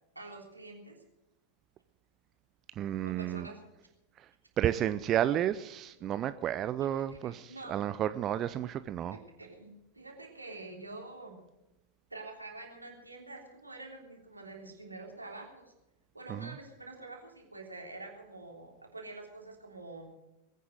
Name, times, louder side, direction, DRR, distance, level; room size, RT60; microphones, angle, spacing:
voice 1, 0.1-1.0 3.0-3.6 7.1-7.8 9.1-11.4 12.1-15.7 16.1-20.1, right 2 dB, 85° right, 1 dB, 3.3 m, -47 dB
voice 2, 2.8-3.5 4.6-9.2 16.3-16.5, right 11 dB, 30° right, 13 dB, 0.5 m, -31 dB
21.5 x 9.4 x 6.4 m, 0.93 s
figure-of-eight pair, 90°, 0 cm